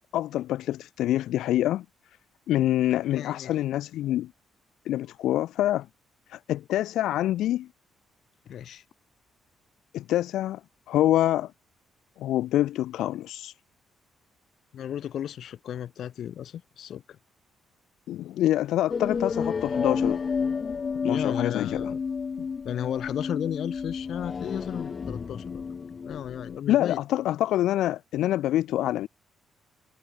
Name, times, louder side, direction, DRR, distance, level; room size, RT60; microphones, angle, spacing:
voice 1, 0.1-1.8 2.5-4.3 4.9-5.9 6.3-7.7 9.9-10.6 10.9-11.5 12.2-13.5 18.1-20.2 21.0-21.9 22.4-22.5 26.7-29.1, left 13 dB, 85° left, 0.9 m, -26 dB
voice 2, 3.1-3.5 8.5-8.8 14.7-17.2 21.0-22.0 22.6-25.6 26.0-27.0, left 10 dB, 65° left, 5.5 m, -34 dB
sound 1, 18.9-26.6, left 5 dB, 40° left, 1.5 m, -31 dB
cardioid pair, 90°, 0 cm